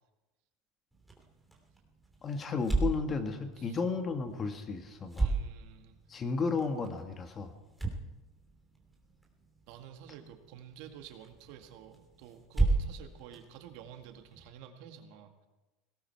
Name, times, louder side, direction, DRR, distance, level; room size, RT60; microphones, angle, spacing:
sound 1, 0.9-14.5, right 3 dB, 5° right, 2.8 m, -37 dB
voice 1, 2.2-5.3 6.1-7.5, left 4 dB, 30° left, 7 dB, 1.8 m, -33 dB
voice 2, 5.2-6.0 9.7-15.3, right 9 dB, 70° right, 6 dB, 1.9 m, -50 dB
18.0 x 17.0 x 4.7 m, 1.1 s
supercardioid pair, 120°, 0 cm